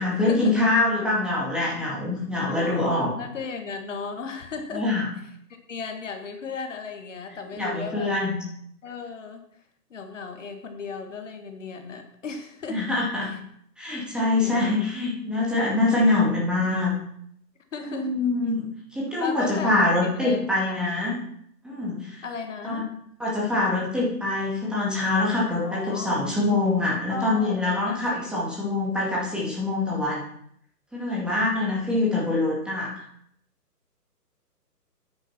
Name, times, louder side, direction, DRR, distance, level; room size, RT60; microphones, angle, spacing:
voice 1, 0.0-3.1 4.7-5.1 7.5-8.4 12.7-13.3 13.8-16.9 17.8-21.2 21.6-22.2 22.6-22.8 23.2-30.3 30.9-32.9, left 2 dB, ahead, -6 dB, 2.0 m, -24 dB
voice 2, 2.5-4.9 5.7-8.1 8.8-9.4 9.9-12.8 13.3-13.4 14.4-14.9 17.7-18.1 19.2-20.4 20.7-20.9 22.2-22.8 25.6-26.3 27.1-28.3, left 5 dB, 50° left, 5 dB, 1.6 m, -36 dB
9.6 x 9.0 x 4.3 m, 0.68 s
figure-of-eight pair, 135°, 49 cm